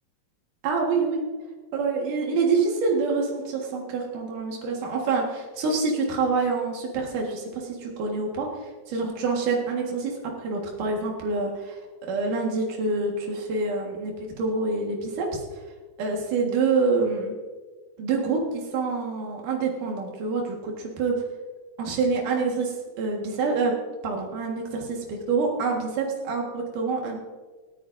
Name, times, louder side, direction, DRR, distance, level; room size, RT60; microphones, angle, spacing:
voice 1, 0.6-1.2 1.7-10.1 10.4-15.4 16.0-17.3 18.0-21.1 21.8-23.7 24.0-27.2, right 4 dB, 90° right, -1 dB, 3.3 m, -26 dB
26.5 x 9.5 x 2.6 m, 1.4 s
omnidirectional pair, 3.6 m